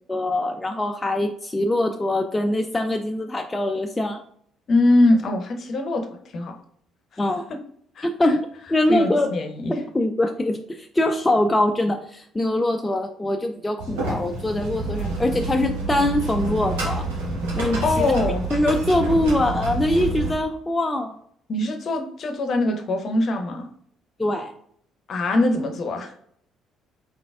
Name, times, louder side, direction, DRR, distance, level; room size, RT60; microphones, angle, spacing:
voice 1, 0.1-4.2 7.2-7.5 8.0-9.3 9.7-17.1 17.6-18.1 18.5-21.2 24.2-24.5, left 1 dB, 15° left, 5 dB, 0.4 m, -23 dB
voice 2, 4.7-6.6 8.0-8.1 8.9-9.7 17.8-18.4 21.5-23.7 25.1-26.1, left 2 dB, 50° left, 5 dB, 0.7 m, -22 dB
sound 1, 13.8-20.3, right 3 dB, 75° right, 1.0 m, -28 dB
4.2 x 3.9 x 2.3 m, 0.65 s
figure-of-eight pair, 50°, 0 cm